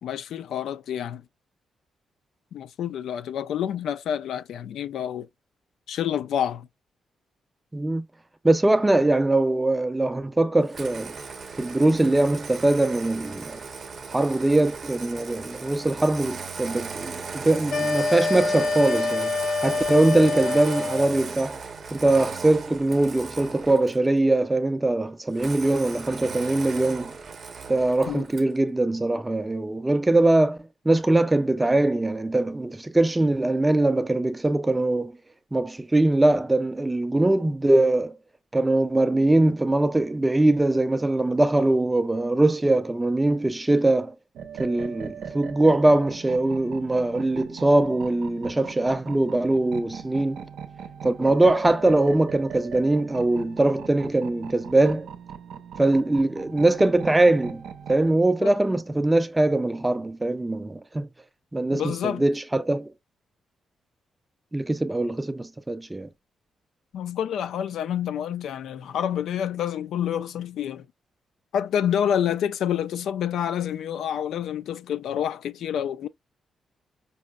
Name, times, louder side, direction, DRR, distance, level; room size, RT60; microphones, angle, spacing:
voice 1, 0.0-1.2 2.5-5.3 5.9-6.7 28.1-28.2 58.4-58.5 61.7-62.2 66.9-70.9 71.5-76.1, left 9 dB, 75° left, 0.3 m, -28 dB
voice 2, 7.7-8.0 8.4-11.2 11.6-13.6 14.1-19.4 19.6-21.6 21.9-27.1 27.7-30.6 30.9-35.2 35.5-38.2 38.5-44.2 44.6-50.4 51.0-55.1 55.8-57.6 57.9-61.1 61.5-62.9 64.5-66.1, right 2 dB, 10° right, 0.3 m, -22 dB
Engine starting, 10.7-24.1 25.4-28.6, right 5 dB, 35° right, 0.7 m, -37 dB
sound 1, 17.7-21.2, left 4 dB, 55° left, 0.7 m, -26 dB
sound 2, 44.3-58.1, right 8 dB, 85° right, 0.6 m, -39 dB
5.3 x 2.0 x 2.3 m
wide cardioid pair, 180°, 0 cm